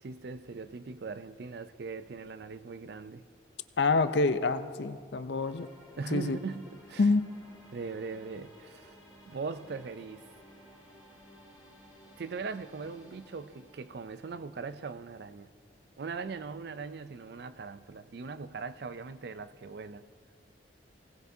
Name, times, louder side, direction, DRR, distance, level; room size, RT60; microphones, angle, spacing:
voice 1, 0.0-3.2 6.0-7.1 7.7-9.0 9.3-10.2 12.2-15.5 16.0-20.1, right 4 dB, 55° right, 13 dB, 0.4 m, -40 dB
voice 2, 3.8-5.7 6.1-6.4 7.0-7.3, left 3 dB, 60° left, 12 dB, 0.5 m, -27 dB
sound 1, 5.4-15.4, equal, 5° right, 3.6 m, -57 dB
20.5 x 17.5 x 2.7 m, 2.1 s
head